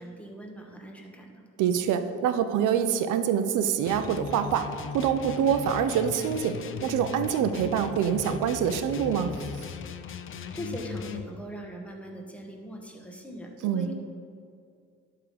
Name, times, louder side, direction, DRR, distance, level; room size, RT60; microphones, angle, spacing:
voice 1, 0.0-1.4 10.5-13.9, right 1 dB, 5° left, 1 dB, 1.2 m, -41 dB
voice 2, 1.6-9.4 13.6-13.9, right 8 dB, 85° right, 9 dB, 0.6 m, -26 dB
sound 1, 3.8-11.3, left 6 dB, 45° left, 0.5 m, -38 dB
11.0 x 3.8 x 5.0 m, 2.3 s
cardioid pair, 90°, 30 cm